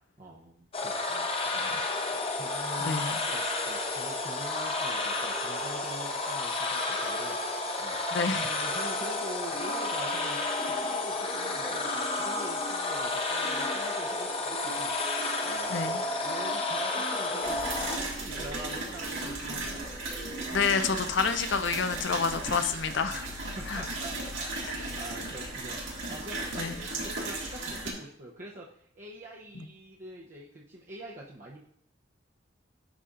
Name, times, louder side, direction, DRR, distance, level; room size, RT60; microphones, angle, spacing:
voice 1, 0.2-2.0 2.3-7.4 7.8-8.0 8.4-17.7 18.0-19.9 23.5-31.7, right 1 dB, 40° right, -5 dB, 0.7 m, -45 dB
sound 1, 0.7-18.0, left 2 dB, 30° left, 0.7 m, -31 dB
voice 2, 2.8-3.2 8.1-8.5 15.7-16.0 20.5-23.3 23.7-23.8 26.6-26.7 29.6-29.7, left 5 dB, 70° left, 9 dB, 0.5 m, -28 dB
sound 2, 9.5-20.8, right 2 dB, 5° right, 0.8 m, -44 dB
sound 3, 17.4-27.9, right 2 dB, 85° right, 1.8 m, -36 dB
11.0 x 4.1 x 2.5 m, 0.66 s
head